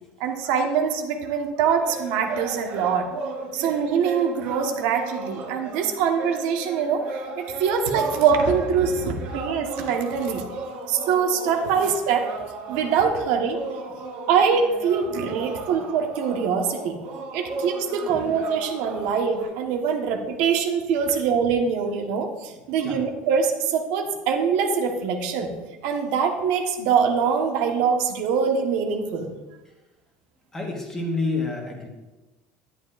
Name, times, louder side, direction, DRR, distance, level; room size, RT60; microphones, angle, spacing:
voice 1, 0.2-3.1 3.5-10.4 10.9-12.3 12.7-13.6 14.3-17.0 17.3-25.5 25.8-29.3, right 6 dB, 65° right, 3 dB, 1.2 m, -23 dB
sound 1, 1.8-19.4, right 3 dB, 50° right, 1.8 m, -36 dB
voice 2, 22.5-23.0 30.5-31.9, left 3 dB, 15° left, 1 dB, 1.3 m, -30 dB
11.0 x 10.0 x 2.5 m, 1.1 s
cardioid pair, 175°, 4 cm